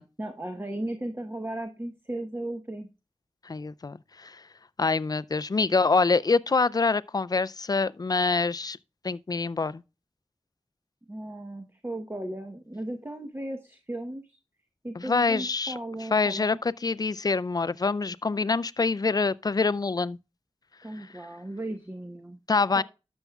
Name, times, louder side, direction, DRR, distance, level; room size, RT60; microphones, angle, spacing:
voice 1, 0.2-2.9 11.1-14.4 14.8-16.6 20.8-22.4 22.8-22.9, right 1 dB, 20° right, 0.9 m, -36 dB
voice 2, 3.4-4.4 4.8-8.8 9.0-9.8 15.0-15.7 16.1-20.2 21.0-21.1 22.5-22.8, left 4 dB, 35° left, 0.3 m, -25 dB
12.5 x 7.1 x 2.3 m
wide cardioid pair, 55°, 11 cm